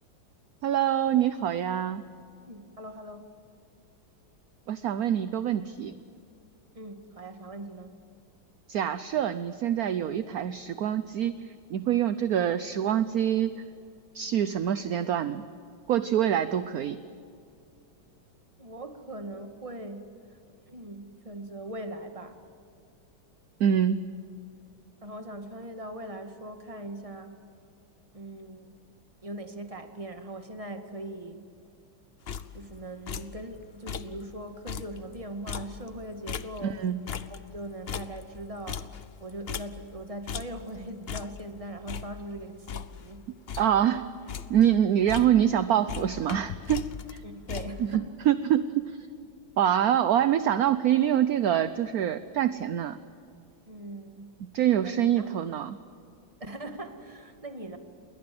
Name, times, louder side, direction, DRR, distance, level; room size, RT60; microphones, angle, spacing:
voice 1, 0.6-2.0 4.7-5.9 8.7-11.3 11.7-13.5 14.1-15.4 15.9-17.0 23.6-24.0 36.6-37.0 43.6-44.0 44.5-47.2 47.9-48.8 49.6-53.0 54.5-55.8, right 10 dB, 60° right, 13 dB, 1.0 m, -25 dB
voice 2, 2.5-3.3 6.7-7.9 18.6-20.4 20.7-22.4 25.0-27.4 28.1-28.8 29.2-31.4 32.5-36.8 37.1-38.9 39.2-43.3 47.2-48.2 53.7-54.3 54.8-55.3 56.4-57.8, right 1 dB, 15° right, 6 dB, 1.9 m, -40 dB
sound 1, 32.3-32.8 33.1-33.4 33.7-34.2 34.5-36.8 37.1-40.0 40.3-40.7 41.1-41.5 41.9-43.2 43.5-43.9 44.1-44.7 45.1-45.6 45.9-47.9, left 7 dB, 55° left, 0.7 m, -38 dB
29.0 x 21.5 x 7.8 m, 2.5 s
omnidirectional pair, 2.1 m